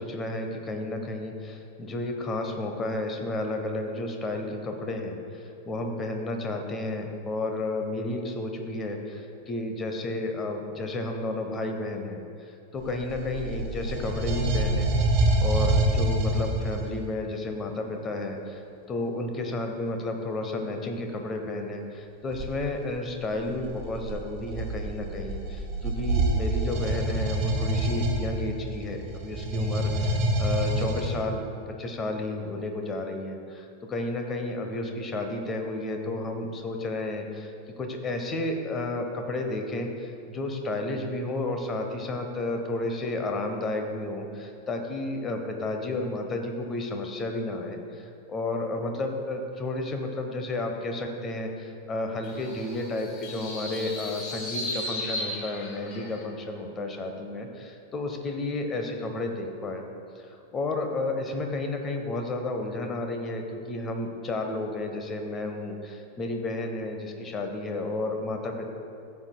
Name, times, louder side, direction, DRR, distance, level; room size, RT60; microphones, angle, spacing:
voice 1, 0.0-12.2 12.5-14.9 15.4-18.6 18.9-31.4 31.8-59.8 60.1-68.6, left 2 dB, 25° left, 4 dB, 1.0 m, -32 dB
sound 1, 12.8-17.0 22.3-22.5 23.3-31.1, right 1 dB, 40° right, 1.7 m, -26 dB
sound 2, 52.2-56.2, left 1 dB, 40° left, 1.7 m, -36 dB
14.5 x 7.3 x 2.3 m, 2.5 s
figure-of-eight pair, 90°, 0 cm